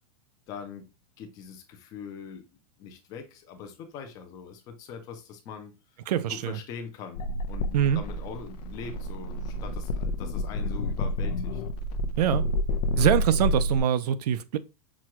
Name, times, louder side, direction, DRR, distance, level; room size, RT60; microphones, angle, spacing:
voice 1, 0.5-0.9 1.2-2.4 2.8-5.7 6.3-11.6 12.9-13.1, left 6 dB, 20° left, 0.4 m, -42 dB
voice 2, 6.1-6.6 7.7-8.0 12.2-12.5 13.0-14.6, right 10 dB, 80° right, 0.5 m, -24 dB
sound 1, 7.1-13.8, left 1 dB, 85° left, 0.6 m, -29 dB
6.0 x 2.2 x 2.9 m
supercardioid pair, 180°, 20 cm